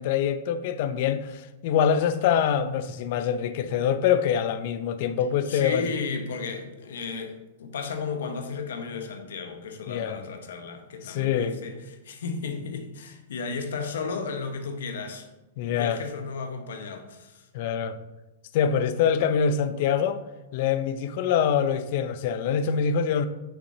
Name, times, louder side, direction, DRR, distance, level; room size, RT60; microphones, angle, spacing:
voice 1, 0.0-5.9 9.9-10.2 11.0-11.6 15.6-16.0 17.5-18.0 18.5-20.2 20.5-23.2, left 8 dB, 55° left, 0.5 m, -25 dB
voice 2, 5.4-15.3 15.6-17.5, left 4 dB, 80° left, 1.0 m, -34 dB
6.5 x 6.0 x 2.7 m
hypercardioid pair, 135°, 0 cm